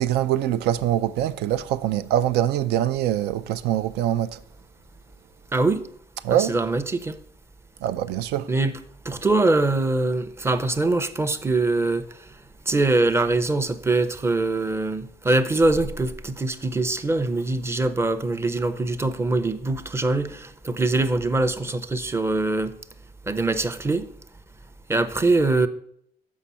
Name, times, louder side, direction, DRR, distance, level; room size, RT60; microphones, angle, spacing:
voice 1, 0.0-4.4 6.2-6.5 7.8-8.5, right 11 dB, 80° right, 0.4 m, -23 dB
voice 2, 5.5-5.9 6.3-7.2 8.5-8.8 9.1-12.1 12.7-22.7 23.3-24.1 24.9-25.7, right 2 dB, 15° right, 0.5 m, -23 dB
7.3 x 5.3 x 5.5 m
cardioid pair, 110°, 17 cm